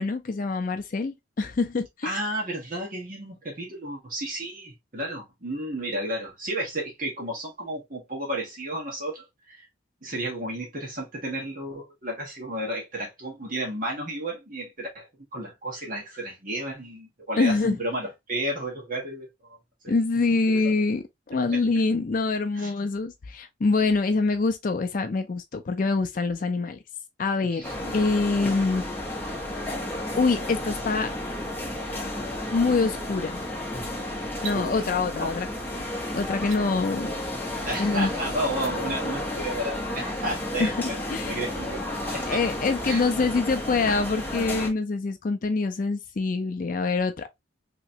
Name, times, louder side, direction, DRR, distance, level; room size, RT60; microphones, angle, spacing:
voice 1, 0.0-2.2 17.4-17.8 19.9-26.8 27.2-27.7 27.9-28.8 30.2-31.1 32.5-33.4 34.4-35.5 35.7-35.8 36.1-37.1 37.8-38.1 40.6-41.4 42.3-47.3, left 3 dB, 40° left, 0.4 m, -25 dB
voice 2, 2.0-9.7 10.0-19.6 19.8-19.9 20.5-20.7 22.5-22.7 27.5-27.9 34.5-34.8 35.2-35.3 37.6-41.9 42.1-42.4 42.8-43.1, right 1 dB, 40° right, 1.3 m, -32 dB
sound 1, 27.6-44.7, left 1 dB, 10° left, 0.8 m, -32 dB
sound 2, 34.3-34.6 36.4-36.6 38.4-38.7, right 8 dB, 75° right, 0.5 m, -39 dB
3.2 x 2.9 x 2.7 m
head